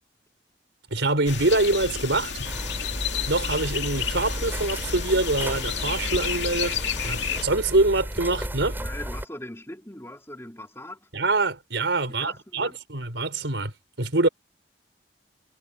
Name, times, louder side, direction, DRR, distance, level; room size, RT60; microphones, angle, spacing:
voice 1, 0.9-2.3 3.3-6.8 7.0-8.8 11.1-13.7 14.0-14.3, right 2 dB, 90° right, 4.6 m, -24 dB
sound 1, 1.3-7.4, left 7 dB, 80° left, 2.4 m, -31 dB
sound 2, 2.4-9.2, equal, 10° right, 7.6 m, -33 dB
voice 2, 8.8-11.1 12.1-12.8, left 1 dB, 15° left, 3.6 m, -40 dB
head